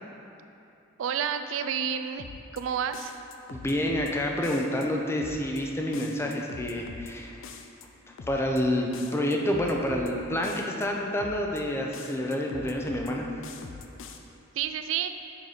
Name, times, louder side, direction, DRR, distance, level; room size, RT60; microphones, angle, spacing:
voice 1, 1.0-2.3 2.5-3.2 14.5-15.1, right 8 dB, 90° right, 9 dB, 0.3 m, -29 dB
sound 1, 2.2-2.6 2.9-4.1 4.4-4.9 5.2-5.6 5.9-7.1 7.4-7.9 8.2-8.6 8.9-10.1 10.4-10.9 11.2-11.6 11.9-13.1 13.4-14.2, left 5 dB, 80° left, 0.4 m, -43 dB
voice 2, 3.5-7.4 7.8-7.9 8.3-13.3, left 1 dB, 15° left, 0 dB, 0.5 m, -28 dB
6.4 x 4.2 x 4.9 m, 2.8 s
head